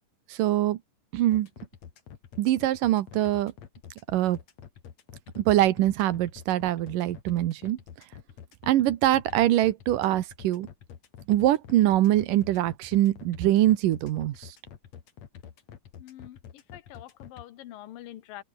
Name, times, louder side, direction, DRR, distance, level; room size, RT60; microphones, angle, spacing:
voice 1, 0.3-0.8 1.1-1.5 2.4-3.5 4.1-4.4 5.4-7.8 8.6-10.7 11.3-14.5, right 14 dB, 80° right, 2.7 m, -23 dB
sound 1, 1.3-17.4, left 8 dB, 55° left, 3.2 m, -47 dB
voice 2, 16.0-16.4 16.7-18.4, left 13 dB, 90° left, 3.0 m, -44 dB
omnidirectional pair, 3.8 m